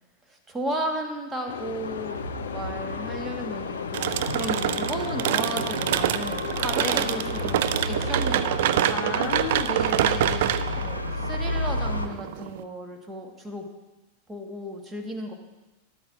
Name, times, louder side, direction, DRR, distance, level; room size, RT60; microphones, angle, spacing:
voice 1, 0.3-9.2 10.8-13.7 14.3-15.3, right 1 dB, 10° right, 2 dB, 1.4 m, -34 dB
sound 1, 1.5-8.9, left 10 dB, 60° left, 0.3 m, -36 dB
sound 2, 1.8-12.1, left 1 dB, 85° left, 0.7 m, -33 dB
sound 3, 3.9-12.6, right 12 dB, 55° right, 0.4 m, -26 dB
voice 2, 4.4-4.7 6.8-7.2 8.9-10.6, left 3 dB, 30° left, 3 dB, 1.0 m, -33 dB
12.5 x 12.0 x 2.5 m, 1.1 s
figure-of-eight pair, 90°, 0 cm